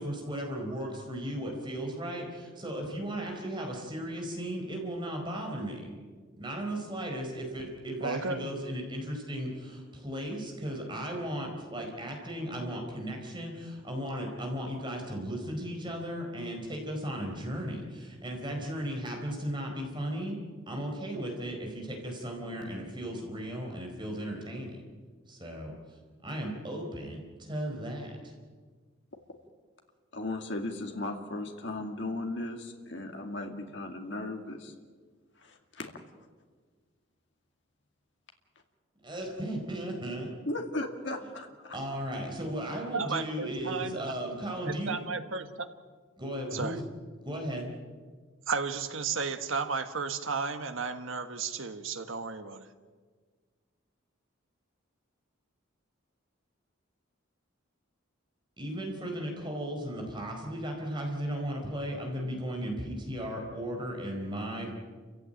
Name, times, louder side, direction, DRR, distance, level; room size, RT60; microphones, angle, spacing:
voice 1, 0.0-5.9 6.4-20.4 20.7-24.7 25.3-25.7 26.2-28.3 39.1-40.3 41.7-44.9 46.2-46.8 47.2-47.7 58.6-64.7, equal, 20° right, 1 dB, 4.5 m, -36 dB
voice 2, 8.0-8.5 42.9-44.1 44.6-45.7 46.5-46.8 48.5-52.7, right 4 dB, 75° right, 8 dB, 1.6 m, -33 dB
voice 3, 30.1-34.7 35.4-35.9 40.5-41.8, left 2 dB, 55° left, 3 dB, 2.3 m, -36 dB
28.5 x 16.0 x 9.0 m, 1.5 s
head